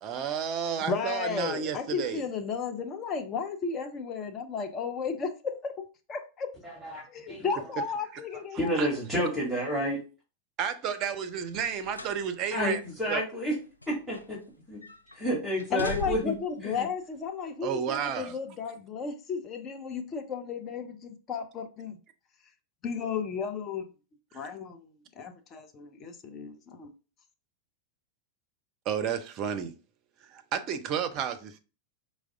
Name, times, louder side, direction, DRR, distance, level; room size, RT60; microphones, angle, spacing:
voice 1, 0.0-2.2 8.8-8.9 10.6-12.8 13.1-13.2 17.6-18.4 28.9-29.7 30.3-31.6, right 8 dB, 35° right, 0.5 m, -31 dB
voice 2, 0.8-6.5 7.1-8.8 15.7-22.0 22.8-23.9 24.3-24.9 25.2-26.9, left 5 dB, 30° left, 0.6 m, -34 dB
voice 3, 6.6-7.5 8.6-10.0 12.5-13.6 13.9-14.0 15.2-16.2 16.6-16.8, equal, 5° right, 1.8 m, -29 dB
sound 1, 11.5-12.2 12.6-12.8 13.5-14.5 14.8-15.2 15.6-16.5 17.4-17.5, left 2 dB, 85° left, 0.4 m, -40 dB
4.6 x 2.1 x 3.5 m
figure-of-eight pair, 90°, 0 cm